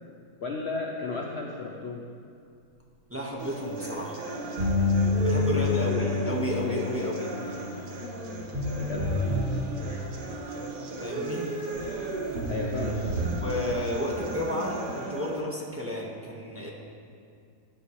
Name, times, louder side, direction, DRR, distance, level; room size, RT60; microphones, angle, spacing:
voice 1, 0.4-2.0 5.5-6.1 6.7-6.8 8.9-9.2 9.8-10.0 12.5-13.4, left 3 dB, 50° left, -1 dB, 0.9 m, -34 dB
voice 2, 3.1-4.2 5.2-7.3 11.0-11.5 13.3-16.7, left 1 dB, 10° right, -3 dB, 1.4 m, -32 dB
sound 1, 3.4-15.4, right 2 dB, 75° right, 2.0 m, -36 dB
sound 2, 4.6-10.5 11.7-11.8 12.3-13.4, left 2 dB, 40° right, 3.5 m, -29 dB
16.5 x 10.5 x 3.2 m, 2.4 s
omnidirectional pair, 1.8 m